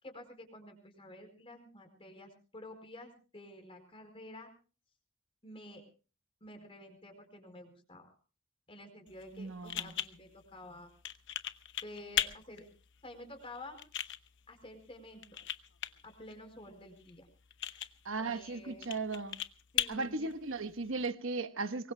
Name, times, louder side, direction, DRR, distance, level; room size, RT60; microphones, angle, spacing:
voice 1, 0.0-4.5 5.4-5.8 6.4-8.1 8.7-10.9 11.8-12.6 13.0-13.8 14.5-15.2 16.0-17.3 17.6-17.8 18.2-18.9 19.7-20.3, left 1 dB, 25° left, 4.9 m, -50 dB
sound 1, 9.1-21.1, left 11 dB, 55° left, 0.9 m, -41 dB
voice 2, 9.3-9.9 18.0-19.4 19.9-21.9, right 3 dB, 60° right, 1.2 m, -37 dB
24.5 x 23.0 x 2.2 m
head